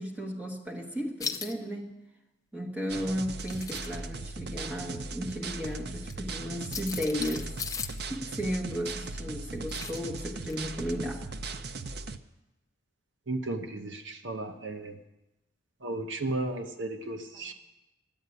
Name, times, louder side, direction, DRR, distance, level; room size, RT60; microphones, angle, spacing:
voice 1, 0.0-2.0 2.5-7.5 7.8-11.2 17.3-17.5, equal, 5° right, -1 dB, 1.5 m, -34 dB
sound 1, 1.2-1.5 3.2-4.0 6.0-6.1 6.7-8.0 9.7-10.1 10.5-10.6, left 6 dB, 20° left, 0.5 m, -37 dB
sound 2, 2.9-12.2, right 3 dB, 55° right, 0.6 m, -38 dB
voice 2, 13.3-15.0 15.8-17.5, right 2 dB, 70° right, 7 dB, 0.9 m, -34 dB
10.5 x 8.7 x 9.5 m, 0.98 s
head